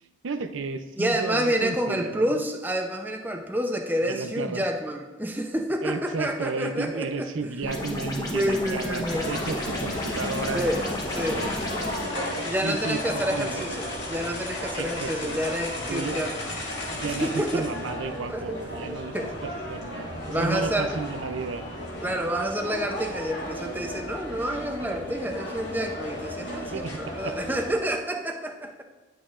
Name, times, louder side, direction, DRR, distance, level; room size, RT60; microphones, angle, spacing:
voice 1, 0.2-2.4 4.0-4.7 5.8-10.7 11.2-11.5 12.0-13.8 14.7-15.5 15.9-16.2 16.9-21.6 26.7-27.3, right 4 dB, 90° right, 10 dB, 0.6 m, -33 dB
voice 2, 1.0-7.2 7.7-7.8 8.3-9.2 10.5-10.8 11.1-11.4 12.4-16.5 17.1-17.7 18.3-19.3 20.3-21.0 22.0-28.8, equal, 10° right, 3 dB, 0.6 m, -29 dB
sound 1, 7.6-12.0, left 1 dB, 20° left, 1.0 m, -32 dB
sound 2, 9.1-27.7, left 1 dB, 70° left, 1.8 m, -34 dB
10.0 x 6.2 x 2.5 m, 1.3 s
head